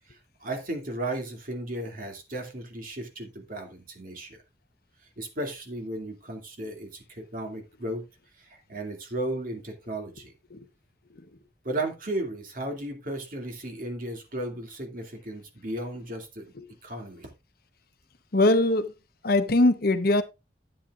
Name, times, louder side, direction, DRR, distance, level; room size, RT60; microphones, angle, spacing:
voice 1, 0.1-4.4 5.2-8.1 8.4-10.3 11.6-16.5 16.8-17.3, right 1 dB, 50° right, 2.4 m, -35 dB
voice 2, 18.3-18.9 19.2-20.2, left 2 dB, 55° left, 0.9 m, -22 dB
12.0 x 8.8 x 2.4 m
head